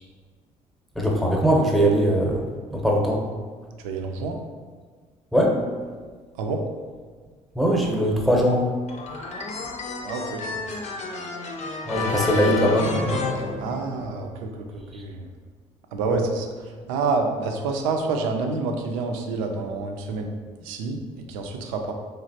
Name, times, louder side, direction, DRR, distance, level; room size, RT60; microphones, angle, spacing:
voice 1, 1.0-2.4 2.7-3.2 5.3-5.6 7.6-8.6 11.9-12.9 16.1-16.2, equal, ahead, -1 dB, 0.7 m, -21 dB
voice 2, 3.8-4.4 6.4-6.6 10.0-10.6 13.6-15.3 15.9-20.3 20.6-21.9, right 3 dB, 75° right, 4 dB, 0.4 m, -28 dB
sound 1, 8.9-14.3, left 3 dB, 40° left, 0.5 m, -30 dB
3.2 x 2.4 x 2.7 m, 1.5 s
hypercardioid pair, 55°, 17 cm